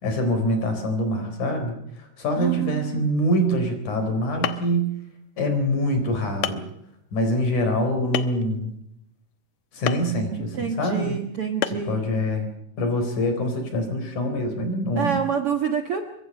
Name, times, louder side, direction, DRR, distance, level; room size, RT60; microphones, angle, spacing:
voice 1, 0.0-4.9 5.4-6.6 7.1-8.8 9.7-11.2 11.7-12.5 12.8-15.2, equal, 55° left, 6 dB, 5.4 m, -25 dB
voice 2, 2.4-3.0 10.5-12.1 15.0-16.0, right 7 dB, 50° right, 5 dB, 1.9 m, -27 dB
sound 1, 4.0-4.1 4.4-4.8 5.6-5.7 6.4-6.7 8.1-8.5 9.9-10.1 11.6-11.9, left 12 dB, 75° left, 2.7 m, -27 dB
25.0 x 23.0 x 5.5 m, 0.78 s
omnidirectional pair, 4.2 m